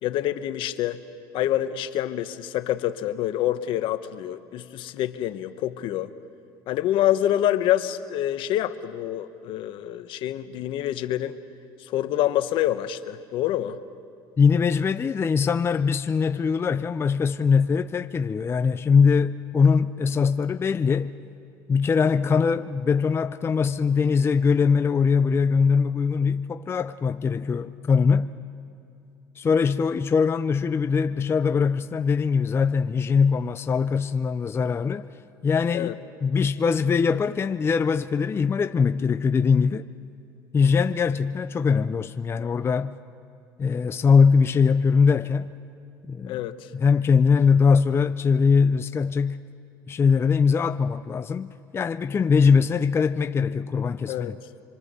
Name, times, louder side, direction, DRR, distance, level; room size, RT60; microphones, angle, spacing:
voice 1, 0.0-1.0 1.3-6.1 6.7-11.4 11.9-13.8 35.7-35.9 46.3-46.5 54.1-54.3, left 12 dB, 65° left, 1.0 m, -26 dB
voice 2, 14.4-21.1 21.7-28.3 29.4-35.1 35.4-39.8 40.5-43.0 43.6-45.5 46.1-46.4 46.7-49.4 49.9-54.4, left 5 dB, 25° left, 0.5 m, -22 dB
26.0 x 23.5 x 6.8 m
supercardioid pair, 100°, 9 cm